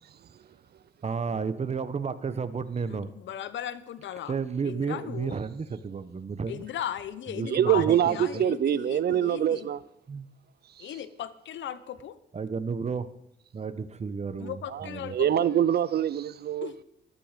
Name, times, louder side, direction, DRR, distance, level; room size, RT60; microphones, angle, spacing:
voice 1, 1.0-3.1 4.3-6.6 7.3-8.4 10.1-10.3 12.3-13.1 13.5-15.1, right 5 dB, 35° right, 1.1 m, -32 dB
voice 2, 2.8-4.4 4.6-5.4 6.5-9.7 10.8-12.2 14.4-15.5 16.6-16.7, left 10 dB, 70° left, 1.0 m, -37 dB
voice 3, 7.5-9.8 15.1-16.7, right 10 dB, 55° right, 0.6 m, -24 dB
14.0 x 12.0 x 5.1 m
cardioid pair, 90°, 20 cm